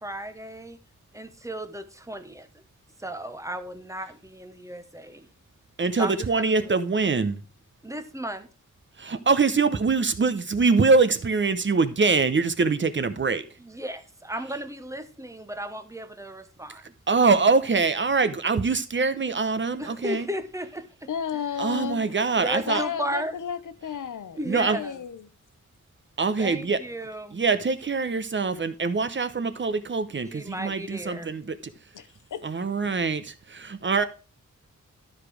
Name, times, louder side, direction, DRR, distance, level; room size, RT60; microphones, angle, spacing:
voice 1, 0.0-0.8 1.1-2.6 3.0-5.3 6.0-6.8 7.8-8.5 13.6-16.9 19.8-21.4 22.4-23.3 24.4-24.9 26.4-27.4 30.3-31.4, equal, 10° right, 0.9 m, -35 dB
voice 2, 5.8-7.4 9.0-13.4 17.1-20.3 21.6-22.8 24.5-24.8 26.2-26.8 27.3-31.6 32.4-34.0, right 4 dB, 40° right, 0.8 m, -24 dB
voice 3, 21.1-22.1 22.6-25.3 31.9-33.0, left 8 dB, 80° left, 0.9 m, -33 dB
12.5 x 5.0 x 4.9 m
wide cardioid pair, 170°, 30 cm